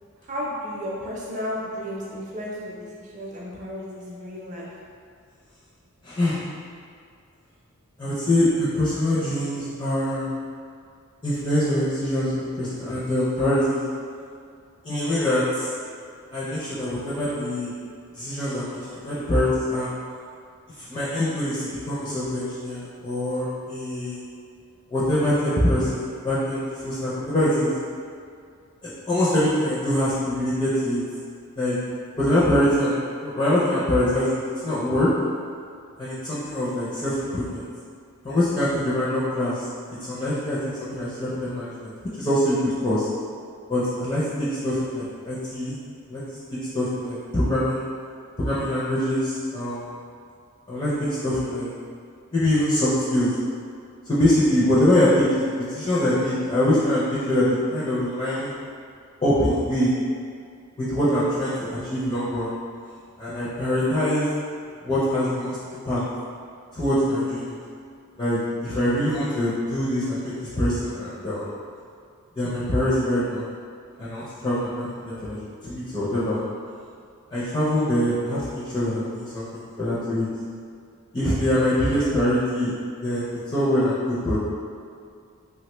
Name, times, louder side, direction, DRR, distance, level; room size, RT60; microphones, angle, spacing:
voice 1, 0.2-4.7, equal, 35° right, -5 dB, 0.5 m, -33 dB
voice 2, 6.0-6.4 8.0-10.3 11.2-13.8 14.8-15.7 16.3-17.7 18.1-19.9 20.8-24.2 24.9-27.7 28.8-31.0 31.6-31.7 32.2-32.9 33.2-35.1 36.0-37.6 38.2-39.7 40.0-41.9 42.2-43.1 43.7-45.8 46.1-46.2 46.5-47.9 48.4-49.9 50.7-51.7 52.3-53.4 54.1-58.5 59.2-59.9 60.8-62.5 63.2-64.3 64.8-66.0 66.7-67.6 68.2-71.5 72.4-73.5 74.0-76.4 77.3-80.3 81.1-82.7 83.0-84.4, left 1 dB, 20° left, -9 dB, 0.4 m, -24 dB
3.5 x 2.1 x 2.9 m, 2.3 s
head